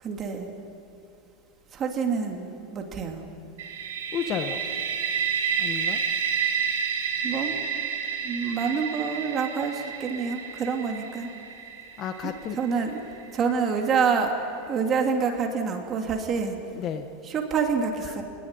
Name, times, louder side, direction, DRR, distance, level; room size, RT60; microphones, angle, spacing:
voice 1, 0.0-0.5 1.7-3.2 7.2-7.5 8.2-11.3 12.2-13.0 13.3-14.3 14.7-16.6 17.2-18.2, right 5 dB, 25° right, 3 dB, 2.9 m, -27 dB
sound 1, 3.6-13.3, right 7 dB, 80° right, 5.4 m, -30 dB
voice 2, 4.1-4.6 5.6-6.0 12.0-12.6 16.7-17.1, left 8 dB, 35° left, 8 dB, 1.5 m, -31 dB
25.0 x 20.5 x 10.0 m, 2.6 s
supercardioid pair, 155°, 0 cm